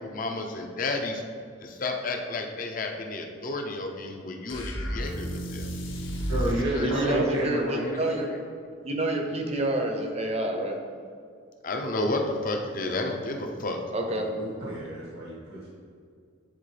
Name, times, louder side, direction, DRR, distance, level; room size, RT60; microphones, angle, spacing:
voice 1, 0.0-1.2 1.6-5.7 6.7-8.4 11.6-13.8, left 2 dB, 40° left, 3 dB, 0.6 m, -32 dB
sound 1, 4.5-6.6, equal, 65° left, 1.0 m, -31 dB
voice 2, 6.3-8.2 14.1-15.7, right 1 dB, 70° right, -7 dB, 1.5 m, -31 dB
voice 3, 6.8-8.3 8.8-10.8 13.9-14.3, right 1 dB, 30° right, 2 dB, 0.7 m, -28 dB
9.7 x 4.0 x 3.3 m, 2.2 s
head